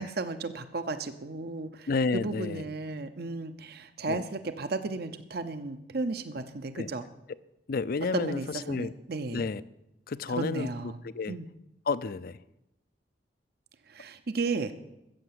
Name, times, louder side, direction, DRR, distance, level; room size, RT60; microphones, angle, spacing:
voice 1, 0.0-7.1 8.1-9.4 10.3-11.0 11.3-11.5 13.9-14.7, right 3 dB, 65° right, 10 dB, 0.8 m, -34 dB
voice 2, 1.9-2.6 4.1-4.2 6.8-6.9 7.7-8.4 8.7-8.9 9.3-9.6 10.1-11.4 11.9-12.4, left 4 dB, 60° left, 17 dB, 0.5 m, -31 dB
14.0 x 7.9 x 7.6 m, 0.88 s
head